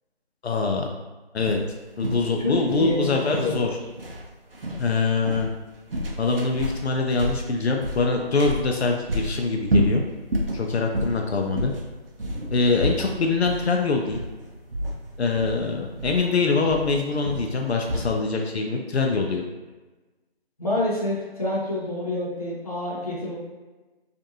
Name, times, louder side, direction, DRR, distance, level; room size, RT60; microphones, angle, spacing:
voice 1, 0.4-0.9 1.3-1.6 2.0-3.7 4.8-5.5 6.2-10.0 10.5-11.7 12.5-14.2 15.2-19.4, left 4 dB, 80° left, 1 dB, 0.5 m, -24 dB
sound 1, 1.4-18.2, equal, 60° right, 0.5 m, -30 dB
voice 2, 2.4-3.8 20.6-23.3, left 1 dB, 35° left, -7 dB, 0.7 m, -28 dB
2.5 x 2.5 x 2.7 m, 1.2 s
figure-of-eight pair, 175°, 32 cm